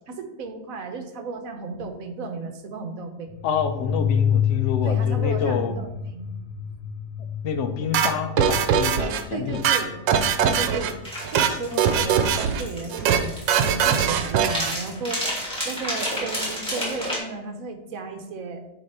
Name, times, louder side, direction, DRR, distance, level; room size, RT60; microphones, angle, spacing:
voice 1, 0.1-3.3 4.8-6.3 9.3-10.0 10.4-11.0 11.3-18.7, right 3 dB, 55° right, 6 dB, 1.1 m, -34 dB
sound 1, 3.3-11.7, left 8 dB, 85° left, 1.3 m, -28 dB
voice 2, 3.4-5.7 7.4-9.6, left 6 dB, 60° left, 6 dB, 0.8 m, -27 dB
sound 2, 7.9-9.2 9.5-10.9 11.2-11.5 11.8-12.6 12.9-13.2 13.5-14.8, right 8 dB, 80° right, 1.3 m, -21 dB
sound 3, 11.0-17.2, equal, 5° left, 2.5 m, -31 dB
9.7 x 3.4 x 4.2 m, 0.92 s
omnidirectional pair, 2.0 m